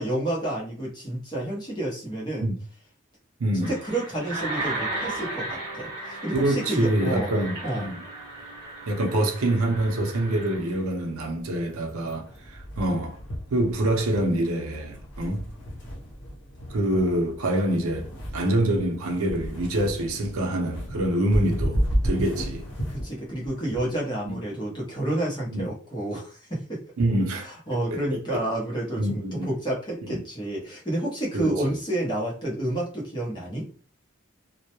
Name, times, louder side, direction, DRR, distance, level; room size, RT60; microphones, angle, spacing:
voice 1, 0.0-2.5 3.5-7.3 7.6-7.9 22.9-26.8 27.4-33.7, right 1 dB, 20° left, 0.7 m, -30 dB
voice 2, 3.4-3.8 6.3-8.0 8.9-13.2 13.5-15.4 16.7-22.7 24.3-24.4 25.5-25.7 27.0-28.4 29.0-29.5 30.0-30.2 31.3-31.5, right 1 dB, 80° right, 0.6 m, -26 dB
sound 1, 3.6-10.8, right 2 dB, 25° right, 1.2 m, -35 dB
sound 2, 7.7-24.0, equal, 55° left, 0.7 m, -34 dB
2.2 x 2.1 x 2.8 m
head